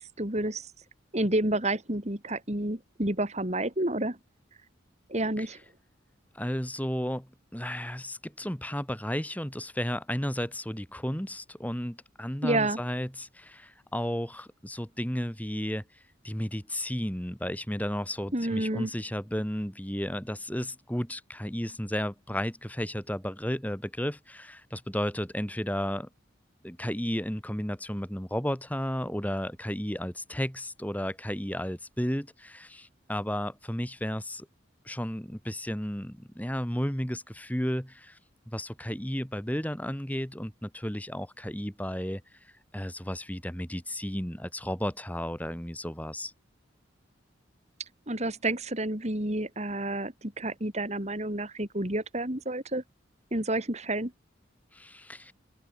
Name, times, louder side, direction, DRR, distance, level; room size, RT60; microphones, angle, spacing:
voice 1, 0.2-0.7 1.1-4.2 5.1-5.6 12.4-12.8 18.3-18.9 48.1-52.8 53.3-54.1, right 1 dB, 35° right, 3.4 m, -29 dB
voice 2, 6.3-15.8 16.2-26.1 26.6-34.5 34.9-38.2 38.5-42.2 42.7-46.3 54.7-55.3, equal, 10° left, 3.5 m, -33 dB
open air
head